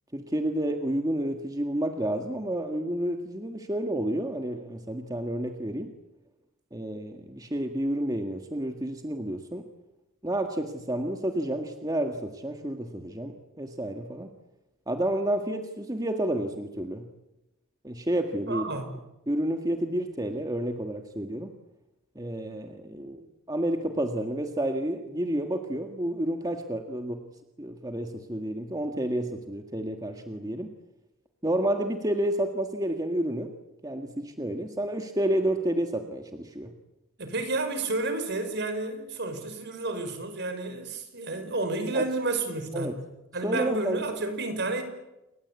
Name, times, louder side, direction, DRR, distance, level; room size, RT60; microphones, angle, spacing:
voice 1, 0.1-5.9 6.7-9.6 10.2-14.3 14.9-17.1 17.8-18.6 19.3-21.5 22.1-27.2 27.6-30.7 31.4-33.5 33.8-36.7 41.9-42.0 42.7-43.0 43.4-44.0, right 1 dB, 20° right, 5 dB, 1.7 m, -30 dB
voice 2, 18.5-18.9 37.2-44.8, right 2 dB, 55° right, 8 dB, 5.2 m, -31 dB
29.0 x 23.5 x 8.3 m, 0.97 s
head